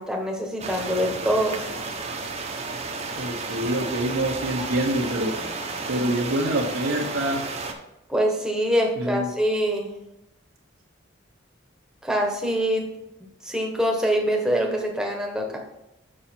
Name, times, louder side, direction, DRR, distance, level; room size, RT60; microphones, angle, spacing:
voice 1, 0.0-1.6 8.1-10.0 12.0-12.8 13.4-15.6, equal, 5° right, 0 dB, 1.2 m, -24 dB
sound 1, 0.6-7.7, right 3 dB, 35° right, 0.9 m, -32 dB
voice 2, 3.2-5.3 5.9-7.4 9.0-9.3, right 1 dB, 80° right, 0 dB, 1.2 m, -26 dB
7.6 x 5.6 x 4.4 m, 0.90 s
head